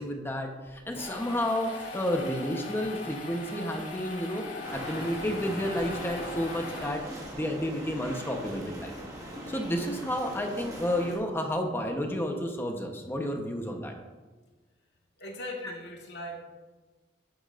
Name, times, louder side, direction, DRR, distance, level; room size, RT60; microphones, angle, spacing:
voice 1, 0.0-7.0 7.3-8.9 9.5-13.9, equal, 15° left, 3 dB, 1.0 m, -31 dB
sound 1, 0.7-7.4, left 3 dB, 50° left, 2.6 m, -41 dB
sound 2, 4.6-11.2, equal, 20° right, 1.8 m, -40 dB
voice 2, 15.2-16.4, left 1 dB, 75° left, -1 dB, 1.9 m, -39 dB
12.0 x 10.0 x 2.6 m, 1.3 s
head